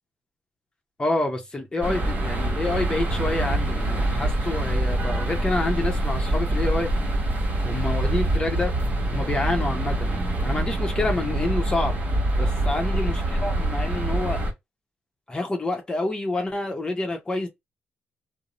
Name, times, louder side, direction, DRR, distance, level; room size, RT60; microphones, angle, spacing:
voice 1, 1.0-6.9 7.6-8.7 9.1-12.0 12.4-14.4 15.3-17.5, left 2 dB, 25° left, 0.8 m, -28 dB
sound 1, 1.8-14.5, right 1 dB, 40° right, 1.0 m, -25 dB
2.4 x 2.0 x 2.9 m
cardioid pair, 80°, 4 cm